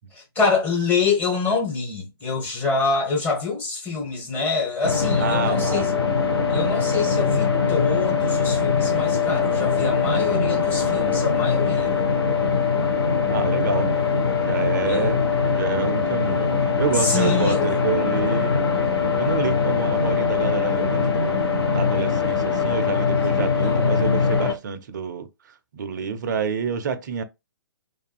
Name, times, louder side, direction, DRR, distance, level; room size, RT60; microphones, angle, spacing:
voice 1, 0.1-5.9 6.5-12.0 14.8-15.1 16.9-17.7 23.6-24.3, left 4 dB, 15° left, 0.9 m, -26 dB
sound 1, 4.8-24.5, left 5 dB, 80° left, 0.7 m, -22 dB
voice 2, 5.2-6.1 13.3-13.9 14.4-18.5 19.2-25.3 25.7-27.2, right 6 dB, 50° right, 0.4 m, -28 dB
2.4 x 2.2 x 2.3 m
figure-of-eight pair, 125°, 13 cm